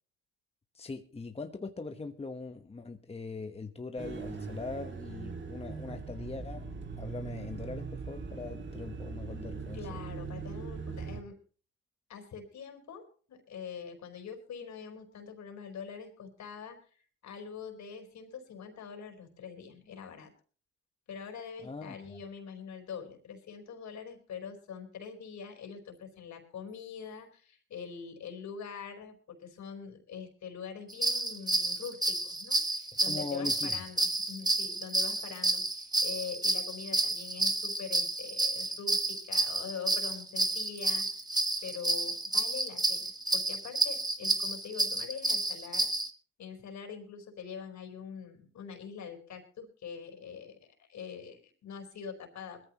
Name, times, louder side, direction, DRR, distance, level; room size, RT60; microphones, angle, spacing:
voice 1, 0.7-9.8 21.6-22.2 33.1-33.8, left 3 dB, 20° left, 6 dB, 1.2 m, -41 dB
sound 1, 4.0-11.2, right 5 dB, 40° right, 2.0 m, -40 dB
voice 2, 9.7-11.4 12.1-20.3 21.1-41.1 41.6-45.9 46.4-52.6, left 6 dB, 65° left, 5 dB, 4.4 m, -44 dB
sound 2, 30.9-46.1, right 2 dB, 15° right, 1.4 m, -30 dB
21.5 x 14.5 x 3.0 m, 0.41 s
cardioid pair, 90°, 30 cm